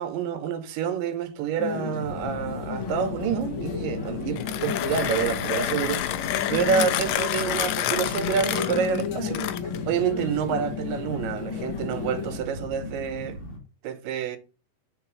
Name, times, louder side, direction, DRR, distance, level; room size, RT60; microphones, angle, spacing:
voice 1, 0.0-9.4 9.9-13.4 13.8-14.4, right 7 dB, 90° right, 2.5 m, -28 dB
sound 1, 1.6-12.4, left 6 dB, 55° left, 1.6 m, -33 dB
sound 2, 2.0-13.6, left 2 dB, 35° left, 0.9 m, -39 dB
Mechanisms, 4.2-9.9, left 12 dB, 80° left, 1.8 m, -29 dB
5.8 x 3.8 x 5.9 m
omnidirectional pair, 3.8 m